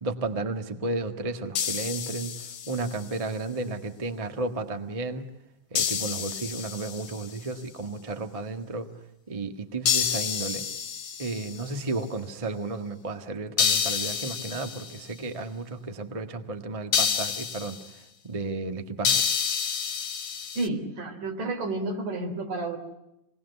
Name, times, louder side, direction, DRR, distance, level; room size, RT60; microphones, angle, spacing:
voice 1, 0.0-5.3 5.7-8.9 9.3-10.6 11.2-19.3, right 3 dB, 20° right, 6 dB, 0.9 m, -33 dB
sound 1, 1.6-3.0 5.8-7.3 9.9-11.7 13.6-15.0 16.9-17.9 19.0-20.7, left 7 dB, 55° left, 2.3 m, -28 dB
voice 2, 20.6-22.8, right 2 dB, 85° right, 4 dB, 5.2 m, -30 dB
27.5 x 20.0 x 8.2 m, 0.89 s
omnidirectional pair, 3.6 m